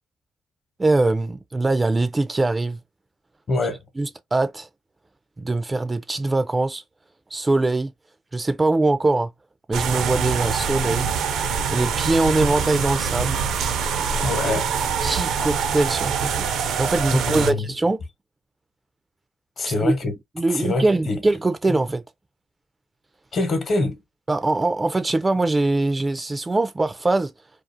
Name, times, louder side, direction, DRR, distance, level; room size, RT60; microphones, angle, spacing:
voice 1, 0.8-2.8 4.0-4.7 5.4-6.8 7.3-7.9 8.3-9.3 9.7-11.1 11.7-13.4 14.4-14.6 15.0-16.5 16.8-18.0 19.7-19.9 20.4-22.0 24.3-27.3, right 2 dB, 20° right, 0.3 m, -22 dB
voice 2, 3.5-3.8 14.2-14.7 17.2-17.7 19.6-20.1 20.5-21.2 23.3-24.0, left 2 dB, 50° left, 0.9 m, -24 dB
sound 1, 9.7-17.5, right 6 dB, 80° right, 0.5 m, -24 dB
2.4 x 2.4 x 2.6 m
cardioid pair, 90°, 0 cm